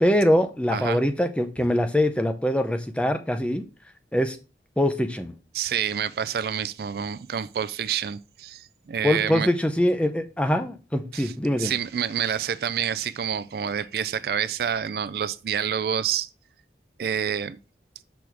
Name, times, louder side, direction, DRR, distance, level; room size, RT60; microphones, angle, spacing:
voice 1, 0.0-3.6 4.1-4.4 4.8-5.3 9.0-11.7, left 1 dB, 5° left, 0.5 m, -23 dB
voice 2, 5.5-9.5 11.1-16.3 17.0-17.6, right 8 dB, 55° right, 0.3 m, -28 dB
6.2 x 3.5 x 6.0 m
head